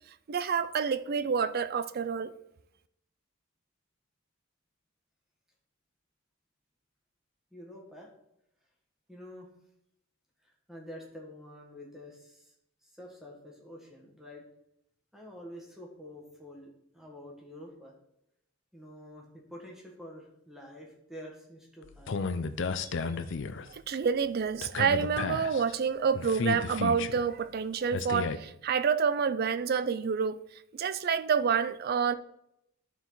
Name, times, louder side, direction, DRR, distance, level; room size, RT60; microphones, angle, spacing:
voice 1, 0.3-2.3 23.7-30.4 30.7-32.1, right 6 dB, 45° right, 0.4 m, -28 dB
voice 2, 7.5-8.1 9.1-9.5 10.4-12.5 12.8-14.4 15.1-17.9 18.7-22.2, left 1 dB, ahead, 1.6 m, -48 dB
sound 1, 21.8-23.7 24.6-25.7 26.1-27.2 27.9-28.4, left 4 dB, 60° left, 0.5 m, -33 dB
11.0 x 4.6 x 3.9 m
head